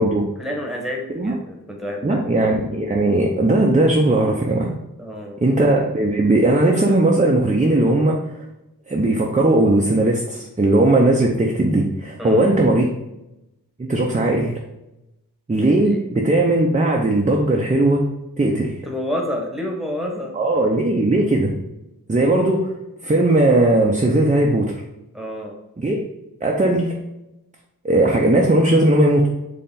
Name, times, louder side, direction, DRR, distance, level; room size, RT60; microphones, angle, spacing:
voice 1, 0.4-2.2 5.0-5.4 12.2-12.5 15.8-16.0 18.8-20.4 25.1-25.6, left 1 dB, ahead, 1 dB, 1.3 m, -29 dB
voice 2, 2.0-4.7 5.4-8.4 8.9-12.9 13.8-14.6 15.5-18.1 18.4-18.8 20.3-21.5 22.1-22.7 23.0-24.8 25.8-26.0 26.4-26.9 27.8-29.3, right 2 dB, 20° right, -1 dB, 0.7 m, -18 dB
4.0 x 3.3 x 3.8 m, 0.91 s
cardioid pair, 40°, 39 cm